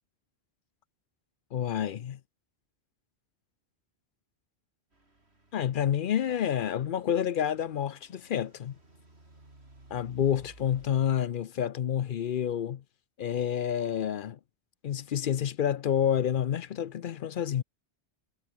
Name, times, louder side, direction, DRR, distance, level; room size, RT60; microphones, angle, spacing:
voice 1, 1.5-2.2 5.5-8.8 9.9-12.8 13.2-14.4 14.8-17.6, left 9 dB, 60° left, 0.7 m, -29 dB
Truck / Idling, 4.9-11.0, right 2 dB, 70° right, 5.1 m, -57 dB
omnidirectional pair, 1.1 m